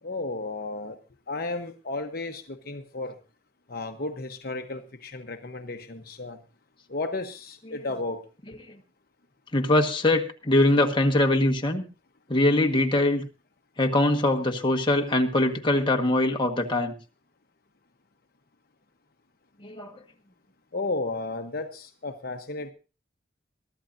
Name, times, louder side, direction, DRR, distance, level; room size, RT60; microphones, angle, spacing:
voice 1, 0.0-1.0 1.3-3.2 3.7-6.4 6.9-8.2 20.7-22.7, left 2 dB, 55° left, 5 dB, 1.0 m, -33 dB
voice 2, 9.5-11.8 12.3-13.2 13.8-16.9 19.6-19.9, left 1 dB, 25° left, 4 dB, 1.5 m, -22 dB
23.0 x 13.0 x 2.6 m, 0.32 s
head